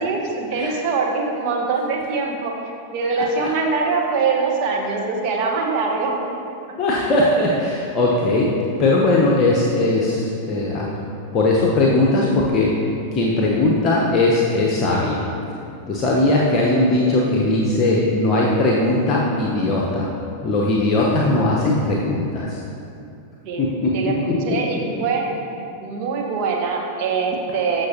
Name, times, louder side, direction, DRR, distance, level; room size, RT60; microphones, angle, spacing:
voice 1, 0.0-2.5 2.9-6.1 23.4-23.6 23.9-25.2 25.8-27.9, right 4 dB, 45° right, 0 dB, 1.2 m, -23 dB
voice 2, 3.2-3.5 6.8-8.5 8.8-10.9 11.3-12.8 13.1-15.2 15.9-20.1 20.4-22.6 23.6-23.9 24.2-24.3, left 2 dB, 30° left, -3 dB, 1.0 m, -19 dB
14.0 x 5.9 x 2.8 m, 2.7 s
figure-of-eight pair, 90°, 0 cm